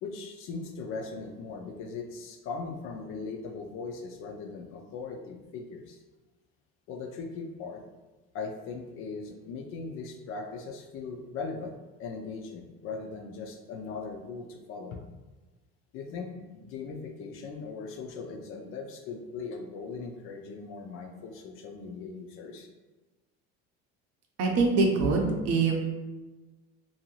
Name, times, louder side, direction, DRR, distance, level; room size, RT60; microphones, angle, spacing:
voice 1, 0.0-6.0 6.9-7.8 8.3-15.0 15.9-22.7, left 4 dB, 45° left, 3 dB, 0.4 m, -39 dB
voice 2, 24.4-25.7, right 3 dB, 55° right, 1 dB, 0.6 m, -24 dB
2.6 x 2.3 x 3.0 m, 1.2 s
cardioid pair, 145°, 29 cm